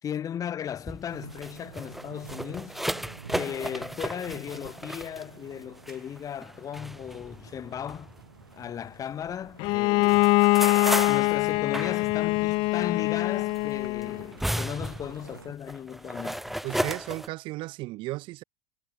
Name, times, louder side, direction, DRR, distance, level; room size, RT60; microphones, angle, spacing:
voice 1, 0.0-2.7 3.4-8.1 8.5-10.3 11.1-16.5, left 9 dB, 30° left, 3.0 m, -36 dB
sound 1, 0.7-9.3 9.6-17.3, equal, ahead, 4.3 m, -35 dB
sound 2, 1.1-15.6, right 5 dB, 85° right, 4.6 m, -49 dB
Bowed string instrument, 9.6-14.3, left 25 dB, 50° left, 0.8 m, -23 dB
voice 2, 16.6-18.4, right 20 dB, 50° right, 3.0 m, -35 dB
hypercardioid pair, 85°, 11 cm